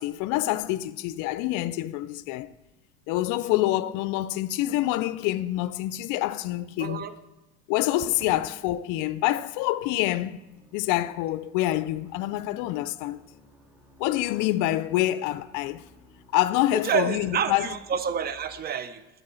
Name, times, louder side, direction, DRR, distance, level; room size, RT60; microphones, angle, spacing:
voice 1, 0.0-2.5 3.1-7.1 7.7-10.4 10.7-13.2 14.0-15.8 16.3-17.7, left 15 dB, 75° left, 0.5 m, -26 dB
voice 2, 6.8-7.1 16.7-19.0, right 7 dB, 30° right, 0.6 m, -28 dB
sound 1, 8.9-18.6, left 1 dB, 5° right, 1.9 m, -57 dB
10.5 x 6.3 x 3.8 m
cardioid pair, 110°, 31 cm